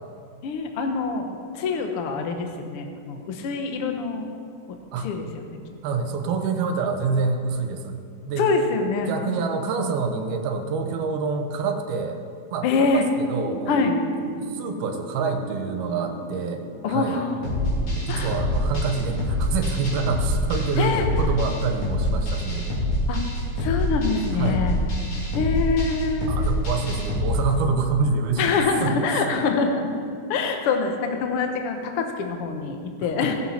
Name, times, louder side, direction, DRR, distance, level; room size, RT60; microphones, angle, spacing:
voice 1, 0.4-4.3 5.0-5.5 8.4-9.4 12.6-13.0 13.7-14.0 16.8-17.4 18.1-18.4 20.8-21.1 23.1-23.2 23.6-24.8 25.3-26.3 28.4-29.9 30.3-33.3, left 4 dB, 80° left, 4 dB, 1.3 m, -25 dB
voice 2, 5.8-8.0 8.3-8.5 9.0-12.2 12.5-13.8 14.4-17.2 17.9-22.7 24.3-24.6 26.3-29.2 33.0-33.1, right 4 dB, 80° right, 5 dB, 2.9 m, -27 dB
sound 1, 13.3-22.1, equal, 65° left, 3.3 m, -39 dB
sound 2, 17.4-27.3, left 1 dB, 45° left, 3.8 m, -25 dB
17.0 x 11.5 x 4.4 m, 2.3 s
omnidirectional pair, 4.4 m